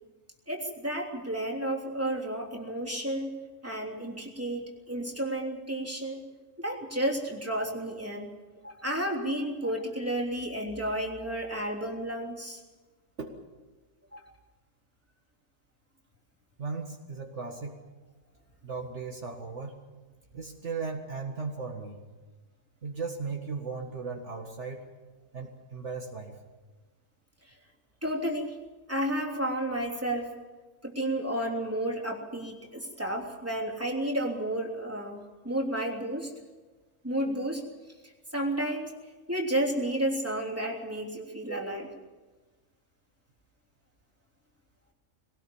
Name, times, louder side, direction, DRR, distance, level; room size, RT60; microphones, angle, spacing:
voice 1, 0.5-3.3 3.6-6.2 6.6-8.3 8.6-12.6 14.1-14.2 28.0-28.5 28.9-30.3 30.8-35.2 35.4-36.3 37.0-37.6 38.3-38.9 39.3-41.9, right 1 dB, 10° right, -1 dB, 3.2 m, -31 dB
voice 2, 16.6-17.8 18.6-19.8 20.3-22.0 22.8-24.9 25.3-26.3 41.5-41.9, right 4 dB, 60° right, 1 dB, 2.1 m, -37 dB
22.5 x 18.0 x 7.1 m, 1.3 s
omnidirectional pair, 1.4 m